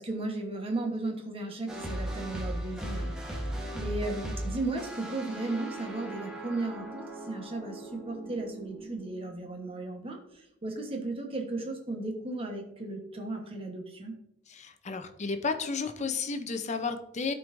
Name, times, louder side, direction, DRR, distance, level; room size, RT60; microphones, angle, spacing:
voice 1, 0.0-3.1 3.7-14.1, right 2 dB, 30° right, 2 dB, 1.2 m, -35 dB
sound 1, 1.7-9.8, right 1 dB, 5° right, 1.3 m, -38 dB
voice 2, 14.5-17.3, left 4 dB, 40° left, 8 dB, 0.6 m, -32 dB
13.0 x 4.6 x 2.6 m, 0.82 s
head